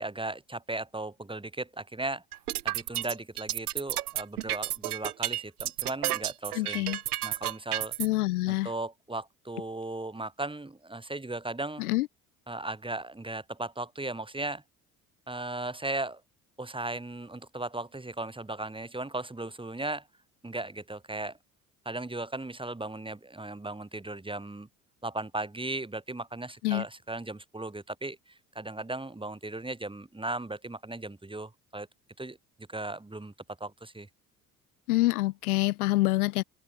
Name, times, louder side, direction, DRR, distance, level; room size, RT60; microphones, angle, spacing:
voice 1, 0.0-2.2 2.6-6.9 7.2-7.9 8.5-11.8 12.5-14.6 15.3-16.2 16.6-20.0 20.4-21.4 21.9-24.7 25.0-28.2 28.6-31.9 32.2-32.4 32.7-33.3 33.6-34.1, right 2 dB, 10° right, 3.9 m, -36 dB
sound 1, 2.3-8.1, right 14 dB, 75° right, 3.9 m, -31 dB
voice 2, 6.5-7.0 8.0-8.7 11.8-12.1 26.6-26.8 34.9-36.4, left 19 dB, 70° left, 2.3 m, -26 dB
figure-of-eight pair, 55°, 45 cm